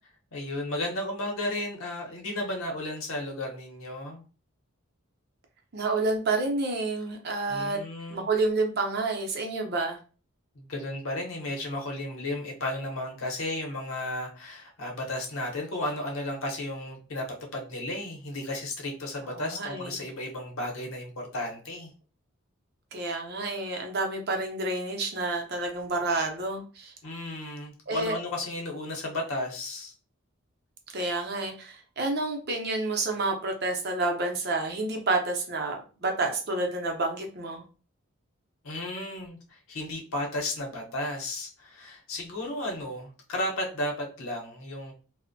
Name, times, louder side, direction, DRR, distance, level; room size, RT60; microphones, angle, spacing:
voice 1, 0.3-4.2 7.5-8.3 10.5-17.3 17.5-21.9 27.0-29.9 38.6-44.9, left 1 dB, 80° left, 1 dB, 0.7 m, -34 dB
voice 2, 5.7-7.8 8.1-10.0 19.2-20.0 22.9-26.9 27.9-28.1 30.9-37.6, right 2 dB, 50° right, 2 dB, 0.5 m, -29 dB
2.5 x 2.0 x 2.5 m, 0.36 s
head